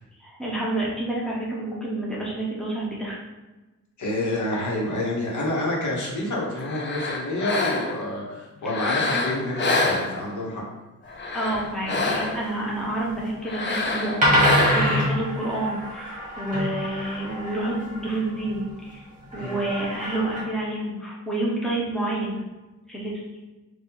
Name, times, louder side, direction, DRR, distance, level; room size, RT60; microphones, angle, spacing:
voice 1, 0.2-3.2 11.3-19.0 19.3-22.4 22.9-23.2, right 1 dB, ahead, -5 dB, 0.8 m, -29 dB
voice 2, 4.0-10.6 19.4-19.6, left 1 dB, 75° left, -3 dB, 1.2 m, -28 dB
sound 1, 6.6-8.1 8.6-10.5 11.1-12.6 13.4-15.0, left 3 dB, 40° left, 0.6 m, -27 dB
sound 2, 11.5-11.6 13.1-13.3 13.9-14.0 14.2-18.6 19.3-20.4, equal, 25° right, 1.4 m, -25 dB
4.6 x 2.5 x 3.9 m, 1.1 s
wide cardioid pair, 150°, 30 cm